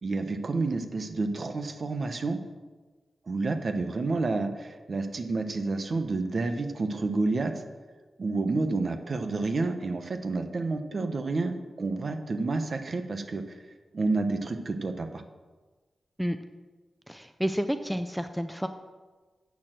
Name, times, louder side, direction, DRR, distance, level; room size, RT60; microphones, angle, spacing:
voice 1, 0.0-2.4 3.3-7.5 8.2-13.6 13.9-15.2, right 3 dB, 45° right, 7 dB, 0.9 m, -29 dB
voice 2, 17.1-18.7, equal, ahead, 9 dB, 0.4 m, -30 dB
8.3 x 6.7 x 7.5 m, 1.3 s
wide cardioid pair, 125°, 0 cm